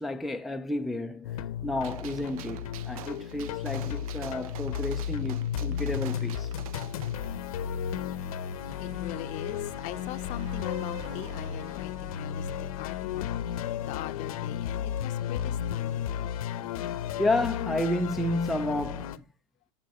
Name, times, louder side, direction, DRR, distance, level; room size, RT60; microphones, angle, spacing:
voice 1, 0.0-6.5 17.2-19.2, left 1 dB, ahead, 0.4 m, -31 dB
sound 1, 1.2-19.2, left 9 dB, 80° left, 0.8 m, -33 dB
Gunshot gunfire, 1.8-7.3, right 10 dB, 80° right, 0.9 m, -46 dB
Car / Engine, 7.2-15.4, right 7 dB, 35° right, 1.6 m, -52 dB
voice 2, 8.8-16.1 16.7-17.0, left 15 dB, 45° left, 0.6 m, -42 dB
7.6 x 7.1 x 3.0 m
supercardioid pair, 135°, 18 cm